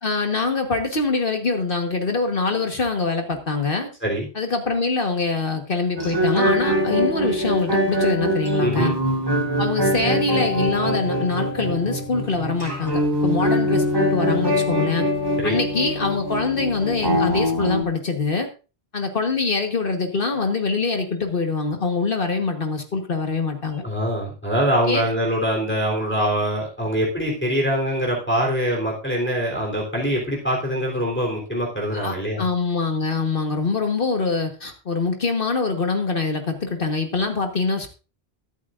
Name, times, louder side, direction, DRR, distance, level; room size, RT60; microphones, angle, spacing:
voice 1, 0.0-3.9 4.3-8.9 9.6-15.0 15.4-18.5 18.9-23.8 24.9-25.1 31.9-37.9, left 4 dB, 55° left, 4 dB, 1.5 m, -24 dB
sound 1, 6.0-17.8, equal, 20° right, 2.8 m, -23 dB
voice 2, 8.6-8.9 15.4-15.6 23.8-32.5, equal, 10° left, -1 dB, 3.3 m, -23 dB
22.5 x 8.1 x 2.5 m, 0.33 s
omnidirectional pair, 1.1 m